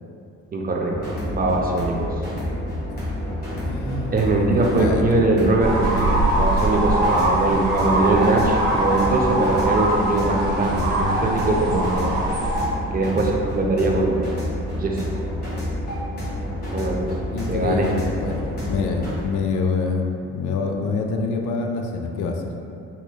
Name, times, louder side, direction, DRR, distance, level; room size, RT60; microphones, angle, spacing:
voice 1, 0.5-2.1 4.1-12.1 12.9-14.3 14.8-15.0 16.7-17.1 17.5-17.9, right 2 dB, 30° right, 0 dB, 0.4 m, -22 dB
sound 1, 0.9-19.2, left 1 dB, 30° left, 1.5 m, -29 dB
voice 2, 3.6-5.3 11.0-11.3 17.3-20.1 20.3-22.4, left 4 dB, 80° left, 3 dB, 0.4 m, -26 dB
sound 2, 5.6-12.6, right 1 dB, 85° right, 1.1 m, -22 dB
4.2 x 2.8 x 2.2 m, 2.6 s
cardioid pair, 90°, 30 cm